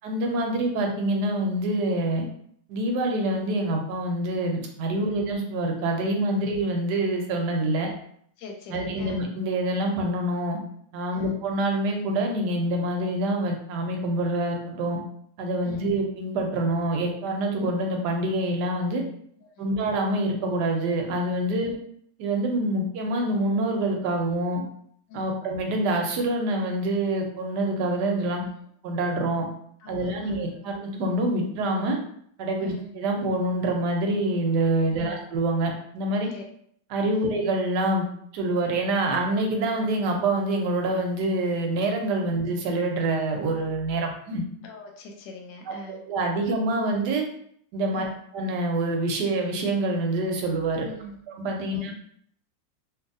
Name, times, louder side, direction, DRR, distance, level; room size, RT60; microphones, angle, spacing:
voice 1, 0.0-2.2 2.7-7.9 8.7-10.6 10.9-15.0 15.4-19.0 19.6-21.7 22.2-24.6 25.1-28.4 28.8-29.5 29.9-32.0 32.4-36.3 36.9-38.1 38.3-44.4 45.7-47.2 47.7-48.0 48.3-50.9 51.3-51.9, right 1 dB, 75° right, 2 dB, 1.2 m, -26 dB
voice 2, 8.4-9.2 11.1-11.4 15.6-15.9 19.4-19.7 21.5-21.8 25.1-25.4 28.4-28.5 29.8-30.8 32.6-32.9 34.9-35.2 36.3-36.4 37.1-37.3 44.6-46.0 47.9-48.1 50.8-51.2 51.7-51.8, left 1 dB, 85° left, 2 dB, 1.3 m, -43 dB
2.9 x 2.6 x 2.5 m, 0.65 s
omnidirectional pair, 1.9 m